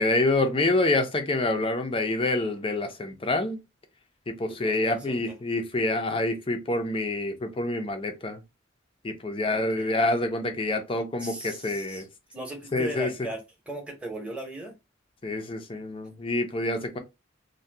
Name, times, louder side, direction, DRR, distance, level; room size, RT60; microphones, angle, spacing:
voice 1, 0.0-3.6 4.3-8.4 9.0-12.1 12.7-13.1 15.2-17.0, left 2 dB, 25° left, 0.5 m, -27 dB
voice 2, 4.5-5.2 9.4-9.9 11.2-13.4 13.7-14.7, right 1 dB, 5° right, 0.8 m, -38 dB
2.7 x 2.2 x 3.3 m
head